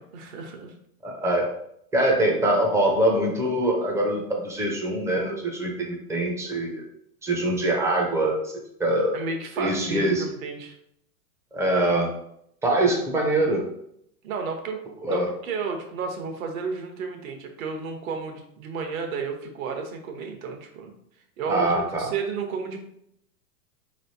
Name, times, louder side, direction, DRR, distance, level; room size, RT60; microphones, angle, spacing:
voice 1, 0.1-0.7 8.8-10.8 14.2-20.9 21.4-22.8, right 5 dB, 65° right, 4 dB, 1.1 m, -32 dB
voice 2, 1.0-1.5 1.9-6.8 7.2-8.5 8.8-9.2 9.6-10.2 11.5-12.1 12.6-13.7 15.0-15.3 21.5-22.1, right 1 dB, 5° right, 0 dB, 0.4 m, -23 dB
3.9 x 3.2 x 2.7 m, 0.72 s
hypercardioid pair, 120°, 45 cm